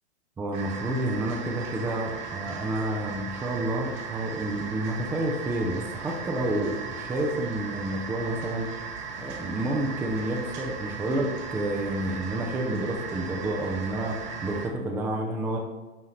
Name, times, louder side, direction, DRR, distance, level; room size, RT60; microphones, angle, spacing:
voice 1, 0.4-8.7 9.2-15.6, right 1 dB, 5° right, 1 dB, 0.5 m, -29 dB
sound 1, 0.5-14.7, right 5 dB, 50° right, 2.0 m, -37 dB
9.8 x 5.4 x 3.2 m, 1.2 s
hypercardioid pair, 145°, 32 cm